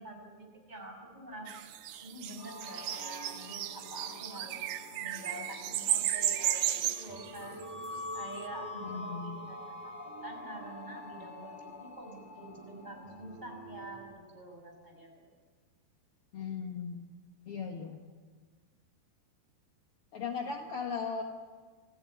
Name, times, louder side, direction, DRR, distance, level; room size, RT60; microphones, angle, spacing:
voice 1, 0.0-1.5 2.0-4.7 4.9-7.6 8.1-15.3, right 1 dB, 10° right, 1 dB, 6.0 m, -47 dB
sound 1, 1.5-8.2, right 12 dB, 70° right, 2.8 m, -34 dB
sound 2, 2.4-14.0, left 1 dB, 35° left, 8.0 m, -46 dB
voice 2, 8.9-9.4 16.3-17.1 17.5-18.0 20.1-21.2, left 5 dB, 65° left, 2 dB, 1.4 m, -37 dB
28.5 x 16.0 x 9.7 m, 1.5 s
omnidirectional pair, 5.0 m